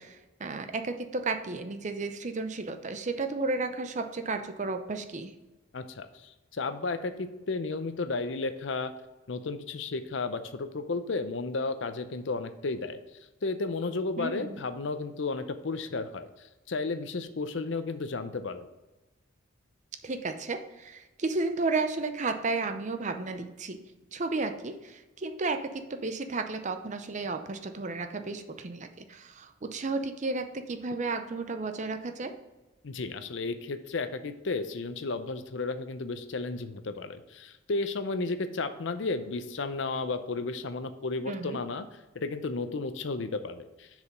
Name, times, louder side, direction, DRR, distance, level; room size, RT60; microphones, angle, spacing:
voice 1, 0.0-5.3 14.2-14.6 20.0-23.8 24.1-32.3 41.3-41.6, right 3 dB, 40° right, 7 dB, 0.6 m, -33 dB
voice 2, 5.7-8.9 9.3-13.0 13.4-18.7 32.8-41.8 42.1-43.9, left 3 dB, 65° left, 10 dB, 0.6 m, -33 dB
6.8 x 4.9 x 5.3 m, 1.1 s
head